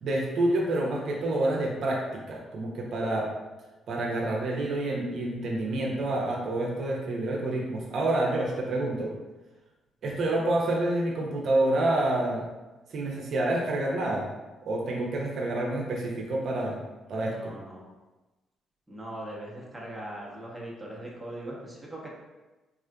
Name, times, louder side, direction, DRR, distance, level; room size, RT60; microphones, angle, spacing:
voice 1, 0.0-3.3 3.9-9.1 10.0-12.4 12.9-14.2 14.7-16.8 17.1-17.5, right 1 dB, 65° right, -3 dB, 0.6 m, -28 dB
voice 2, 17.1-17.8 18.9-22.1, right 1 dB, 5° right, -4 dB, 0.9 m, -40 dB
3.5 x 2.4 x 2.2 m, 1.1 s
supercardioid pair, 65°, 0 cm